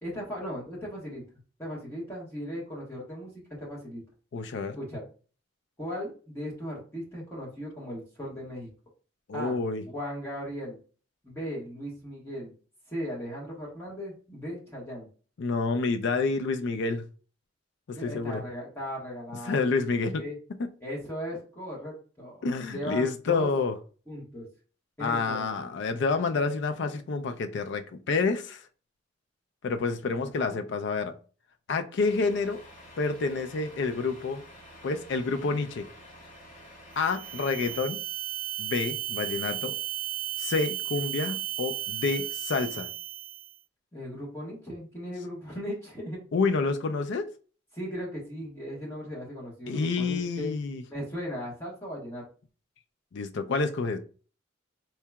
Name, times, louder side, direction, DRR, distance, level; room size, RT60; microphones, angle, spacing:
voice 1, 0.0-1.2 1.6-4.0 4.8-5.1 5.8-8.7 9.3-9.6 9.9-10.8 11.2-12.5 12.9-15.1 17.9-19.7 20.1-20.4 20.8-23.5 24.1-24.4 25.0-25.5 30.1-30.5 43.9-46.2 47.7-50.5 50.9-52.2, equal, 15° left, -5 dB, 1.3 m, -37 dB
voice 2, 4.3-4.8 9.3-9.8 15.4-17.0 17.9-18.4 19.4-20.2 22.4-23.7 25.0-28.6 29.6-31.1 31.7-32.6 33.0-34.4 34.8-35.9 37.0-38.0 38.6-39.7 40.4-42.9 46.3-47.3 49.7-50.8 53.1-54.0, left 4 dB, 60° left, 8 dB, 0.4 m, -28 dB
Truck, 32.0-37.8, left 1 dB, 45° left, 1.8 m, -50 dB
sound 1, 37.0-43.6, right 14 dB, 50° right, 0.3 m, -34 dB
4.4 x 2.8 x 2.3 m, 0.38 s
head